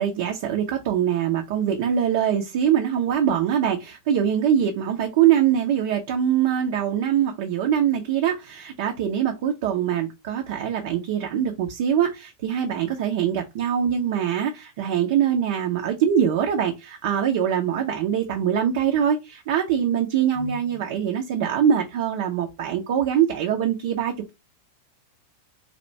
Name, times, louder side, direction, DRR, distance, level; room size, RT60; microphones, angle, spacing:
voice 1, 0.0-24.3, right 9 dB, 50° right, 3 dB, 0.6 m, -23 dB
4.2 x 2.5 x 3.1 m, 0.24 s
figure-of-eight pair, 90°, 0 cm